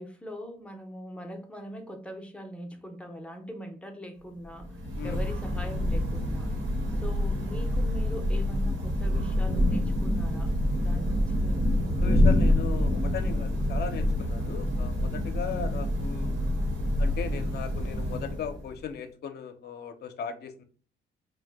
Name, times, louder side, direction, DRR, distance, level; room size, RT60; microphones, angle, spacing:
voice 1, 0.0-4.8 5.0-6.5 6.9-10.5 10.8-12.2 15.4-15.8, equal, 5° left, 0.6 m, -41 dB
Thunder / Rain, 4.5-18.8, left 1 dB, 80° right, 1.1 m, -27 dB
voice 2, 12.0-16.3 17.0-20.6, left 7 dB, 55° left, 0.5 m, -37 dB
2.5 x 2.1 x 3.4 m
cardioid pair, 90°, 20 cm